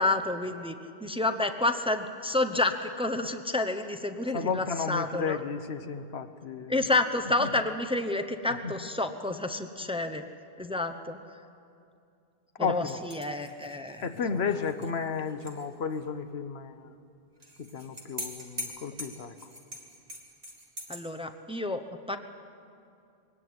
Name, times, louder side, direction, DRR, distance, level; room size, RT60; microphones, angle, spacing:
voice 1, 0.0-5.4 6.7-10.2 10.6-11.2 12.6-14.4 20.9-22.2, left 2 dB, 5° right, 6 dB, 0.8 m, -29 dB
voice 2, 4.3-6.7 7.4-7.5 8.6-8.7 12.6-13.0 14.0-16.9 17.6-19.3, left 5 dB, 85° left, 10 dB, 1.3 m, -33 dB
sound 1, 12.9-15.6 15.9-16.0 17.4-21.0, left 1 dB, 40° right, 2.6 m, -43 dB
21.0 x 17.5 x 9.5 m, 2.5 s
omnidirectional pair, 1.0 m